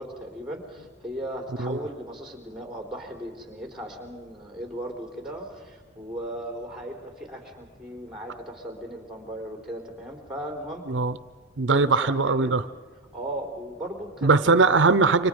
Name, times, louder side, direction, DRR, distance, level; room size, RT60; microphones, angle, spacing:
voice 1, 0.0-10.9 11.7-12.5 13.1-14.3, right 1 dB, 5° right, 2 dB, 3.8 m, -37 dB
voice 2, 11.6-12.6 14.2-15.3, right 4 dB, 75° right, 13 dB, 0.7 m, -20 dB
29.5 x 24.5 x 5.2 m, 1.5 s
head